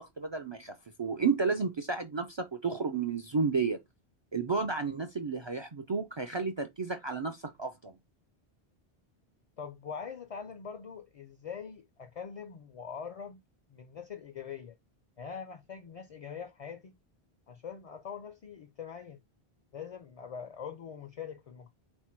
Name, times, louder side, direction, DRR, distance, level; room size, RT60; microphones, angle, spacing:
voice 1, 0.0-3.8 4.3-7.9, right 4 dB, 50° right, 0.3 m, -32 dB
voice 2, 9.6-13.4 13.7-14.8 15.2-17.0 17.5-19.2 19.7-21.7, left 7 dB, 50° left, 0.4 m, -43 dB
4.4 x 2.2 x 4.4 m
omnidirectional pair, 1.1 m